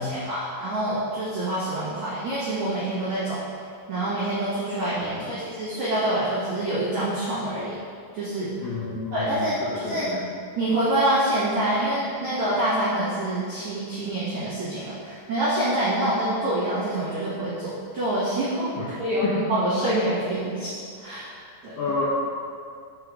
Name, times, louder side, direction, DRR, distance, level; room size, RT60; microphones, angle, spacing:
voice 1, 0.0-3.4 3.9-7.7 8.1-8.5 9.1-10.1 10.5-21.3 21.6-21.7, right 1 dB, 80° right, -11 dB, 1.6 m, -26 dB
voice 2, 8.6-10.2 18.8-18.9 21.8-22.0, left 4 dB, 80° left, -10 dB, 1.9 m, -31 dB
6.7 x 5.5 x 4.8 m, 2.2 s
omnidirectional pair, 5.9 m